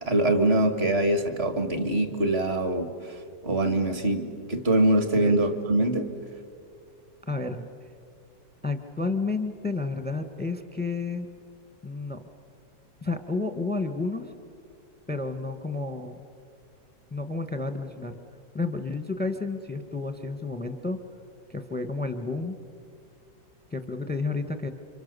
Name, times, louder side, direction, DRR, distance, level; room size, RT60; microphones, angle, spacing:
voice 1, 0.0-3.2 3.4-6.1, right 1 dB, 35° right, 8 dB, 1.9 m, -24 dB
voice 2, 7.2-7.7 8.6-11.3 11.8-12.2 13.0-14.3 15.1-16.2 17.1-18.2 18.5-21.0 21.5-22.6 23.7-24.7, left 3 dB, 5° left, 9 dB, 0.9 m, -31 dB
29.5 x 26.0 x 6.8 m, 2.3 s
omnidirectional pair, 2.1 m